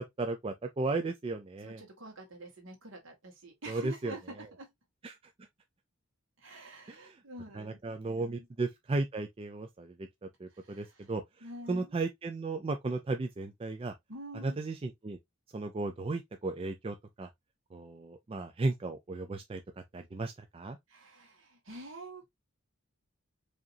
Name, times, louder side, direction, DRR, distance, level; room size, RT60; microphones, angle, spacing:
voice 1, 0.0-1.8 3.7-4.2 5.0-5.2 6.9-7.2 7.5-9.9 10.4-11.2 11.7-13.9 14.4-15.2 15.5-17.3 17.7-19.6 19.9-20.8, right 3 dB, 25° right, 0.3 m, -35 dB
voice 2, 1.6-4.7 6.4-8.5 10.5-11.1 11.4-12.0 14.1-14.6 20.9-22.3, right 1 dB, 65° right, 1.7 m, -47 dB
4.9 x 2.8 x 2.6 m
head